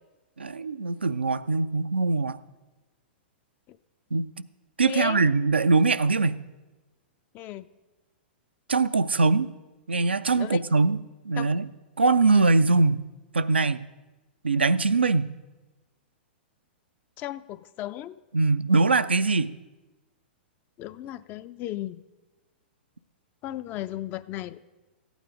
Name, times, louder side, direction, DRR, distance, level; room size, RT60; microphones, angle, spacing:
voice 1, 0.4-2.4 4.1-4.3 4.8-6.4 8.7-9.5 9.9-11.0 11.3-11.7 12.0-13.1 13.3-13.8 14.4-15.3 18.3-19.5, right 3 dB, 85° right, 12 dB, 0.4 m, -22 dB
voice 2, 4.9-5.2 7.3-7.6 10.4-10.6 11.4-11.5 12.3-12.5 17.2-18.2 20.8-22.0 23.4-24.6, left 14 dB, 35° left, 14 dB, 0.4 m, -35 dB
14.0 x 9.2 x 5.1 m, 1.1 s
figure-of-eight pair, 105°, 6 cm